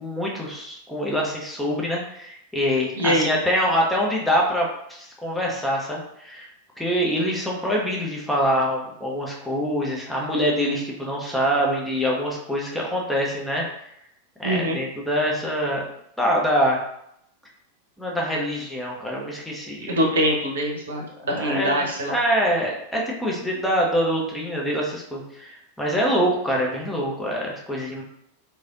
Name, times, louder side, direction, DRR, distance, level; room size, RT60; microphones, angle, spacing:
voice 1, 0.0-6.5 6.8-13.6 14.4-15.8 16.2-16.8 18.0-20.0 21.4-28.0, equal, 5° left, -3 dB, 0.7 m, -25 dB
voice 2, 3.0-3.3 14.4-14.8 19.9-22.2, equal, 65° right, -1 dB, 0.8 m, -23 dB
3.2 x 2.7 x 2.5 m, 0.75 s
figure-of-eight pair, 90°, 0 cm